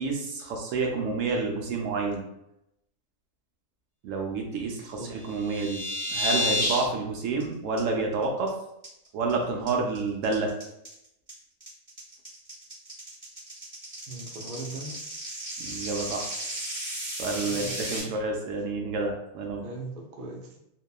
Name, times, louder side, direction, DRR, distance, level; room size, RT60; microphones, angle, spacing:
voice 1, 0.0-2.2 4.0-5.8 6.1-8.5 9.1-10.5 15.6-16.3 17.2-19.6, right 3 dB, 70° right, 1 dB, 0.9 m, -29 dB
sound 1, 5.2-6.8 7.2-7.4 7.8-7.9 8.2-8.5 8.8-9.3 9.7-18.0, left 1 dB, 20° right, 1.1 m, -32 dB
voice 2, 14.1-15.0 17.4-17.8 18.0-18.1 19.6-20.6, right 2 dB, 85° right, -1 dB, 0.4 m, -39 dB
2.8 x 2.2 x 2.2 m, 0.82 s
omnidirectional pair, 1.5 m